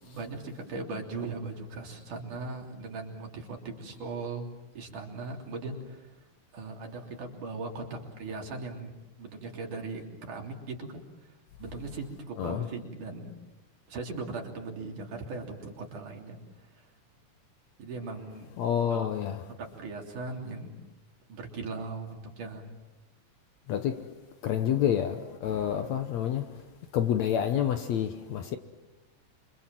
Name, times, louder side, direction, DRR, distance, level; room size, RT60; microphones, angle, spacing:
voice 1, 0.0-6.1 6.5-11.3 11.6-13.3 13.9-16.4 16.8-16.9 17.8-18.5 18.9-20.8 21.3-22.7, right 3 dB, 65° right, 4.6 m, -39 dB
voice 2, 18.6-19.4 23.7-24.1 24.4-26.6 26.9-28.6, left 9 dB, 65° left, 2.0 m, -28 dB
28.0 x 25.0 x 7.6 m
omnidirectional pair, 3.8 m